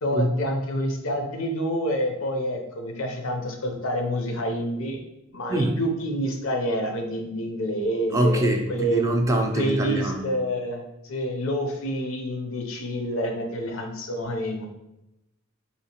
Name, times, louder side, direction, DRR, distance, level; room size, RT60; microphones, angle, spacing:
voice 1, 0.0-5.0 5.3-9.0 9.5-14.7, equal, 75° left, 3 dB, 0.6 m, -28 dB
voice 2, 5.5-5.8 8.1-10.3, right 1 dB, 15° right, 2 dB, 0.3 m, -24 dB
3.5 x 2.8 x 2.8 m, 0.89 s
head